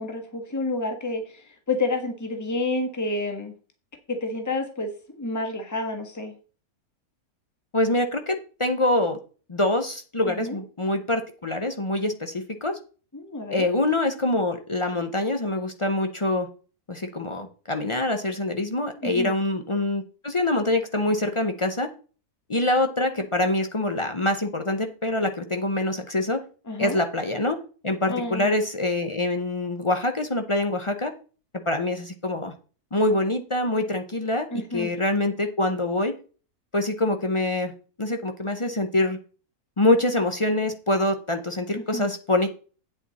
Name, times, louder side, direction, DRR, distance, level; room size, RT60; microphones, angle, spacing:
voice 1, 0.0-3.5 4.1-6.3 10.3-10.6 13.1-13.7 19.0-19.3 26.7-27.0 28.1-28.5 34.5-34.9 41.7-42.1, left 2 dB, 10° left, 5 dB, 1.3 m, -29 dB
voice 2, 7.7-9.2 9.5-12.8 13.5-16.5 16.9-21.9 22.5-26.4 26.8-27.6 27.8-31.1 31.7-32.5 32.9-34.5 34.7-36.1 36.7-37.7 38.0-39.2 39.8-42.6, left 1 dB, 35° left, 6 dB, 0.5 m, -25 dB
8.8 x 7.5 x 4.1 m, 0.38 s
omnidirectional pair, 1.6 m